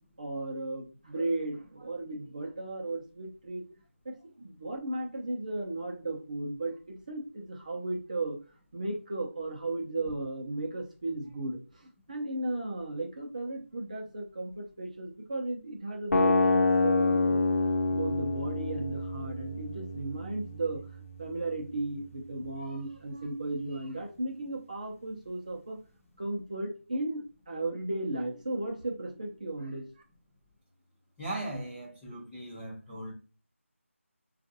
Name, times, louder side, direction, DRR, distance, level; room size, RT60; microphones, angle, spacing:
voice 1, 0.2-3.6 4.0-8.4 8.7-17.4 17.9-20.8 21.2-25.8 26.2-29.9, right 2 dB, 35° right, 1 dB, 0.7 m, -35 dB
sound 1, 16.1-22.1, left 3 dB, 85° left, 0.8 m, -28 dB
voice 2, 31.2-33.1, right 1 dB, 5° left, -10 dB, 0.5 m, -38 dB
5.1 x 2.5 x 2.7 m, 0.34 s
figure-of-eight pair, 170°, 7 cm